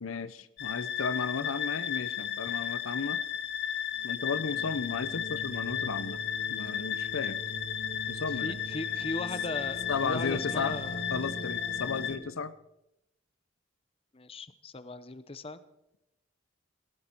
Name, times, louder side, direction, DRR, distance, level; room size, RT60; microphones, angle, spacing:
voice 1, 0.0-3.2 4.0-6.2 6.5-7.4 8.1-8.6 9.9-10.8 11.1-12.5, left 5 dB, 90° left, 15 dB, 0.7 m, -34 dB
sound 1, 0.6-12.2, left 7 dB, 60° left, 1.5 m, -34 dB
voice 2, 8.4-11.0 14.1-15.6, left 2 dB, 30° left, 14 dB, 0.7 m, -38 dB
18.0 x 16.5 x 4.5 m, 0.89 s
head